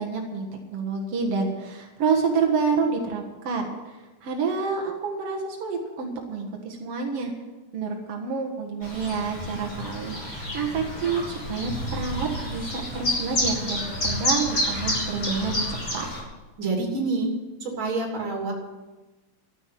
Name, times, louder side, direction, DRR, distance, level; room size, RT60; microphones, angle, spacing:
voice 1, 0.0-7.3 7.7-15.7 15.9-16.0, right 5 dB, 75° right, 1 dB, 1.3 m, -28 dB
Chirp tweet, 8.8-16.2, left 1 dB, 25° left, 4.8 m, -29 dB
voice 2, 16.6-17.3 17.6-18.5, right 3 dB, 30° right, 0 dB, 3.1 m, -27 dB
13.5 x 8.6 x 9.2 m, 1.2 s
omnidirectional pair, 5.2 m